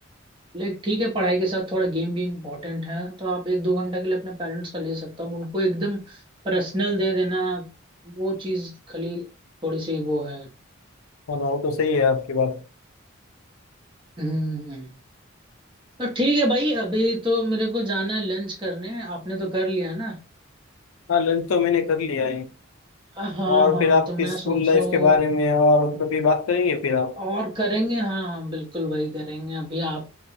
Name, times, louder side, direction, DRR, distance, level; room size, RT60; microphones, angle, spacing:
voice 1, 0.5-7.7 8.0-9.3 9.6-10.5 14.2-14.9 16.0-20.2 23.1-25.2 27.2-30.1, right 1 dB, 25° right, 0.8 m, -26 dB
voice 2, 11.3-12.6 21.1-22.5 23.5-27.2, left 4 dB, 85° left, 0.4 m, -21 dB
2.8 x 2.2 x 2.6 m
head